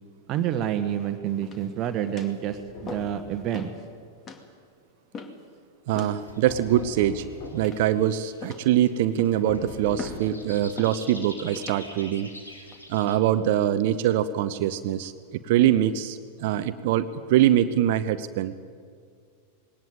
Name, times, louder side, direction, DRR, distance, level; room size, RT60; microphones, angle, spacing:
voice 1, 0.3-3.7, right 10 dB, 35° right, 7 dB, 1.3 m, -28 dB
sound 1, 1.4-1.8 2.2-2.4 2.9-3.2 3.5-3.8 4.3-4.5 5.1-5.5 5.9-6.2 6.8-7.2 7.6-8.0 8.4-8.8 9.2-9.5 10.0-10.3 10.8-11.0 11.6-11.8 12.5-12.8, left 4 dB, 25° left, 2.3 m, -40 dB
sound 2, 2.5-3.5 6.5-7.8 9.5-10.6, left 3 dB, 50° left, 4.2 m, -41 dB
voice 2, 5.9-7.2 7.5-12.3 12.9-15.1 15.5-18.5, right 11 dB, 50° right, 11 dB, 0.8 m, -23 dB
sound 3, 6.1-13.2, left 1 dB, 80° left, 3.2 m, -47 dB
20.5 x 18.5 x 9.5 m, 2.2 s
figure-of-eight pair, 90°, 0 cm